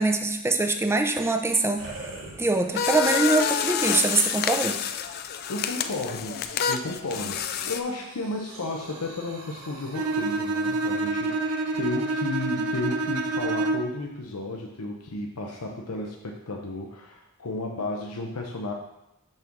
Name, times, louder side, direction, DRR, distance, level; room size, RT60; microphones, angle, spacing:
voice 1, 0.0-1.9 2.4-4.8, right 2 dB, 10° right, 6 dB, 0.5 m, -23 dB
sound 1, 1.8-3.0 3.6-3.7 6.9-10.9, right 2 dB, 65° right, 2.3 m, -44 dB
sound 2, 2.7-7.8, left 7 dB, 45° left, 0.4 m, -28 dB
voice 2, 5.5-18.7, left 2 dB, 90° left, 1 dB, 0.8 m, -33 dB
Bowed string instrument, 9.9-14.0, right 2 dB, 85° right, 0.6 m, -27 dB
6.6 x 3.7 x 5.9 m, 0.89 s
head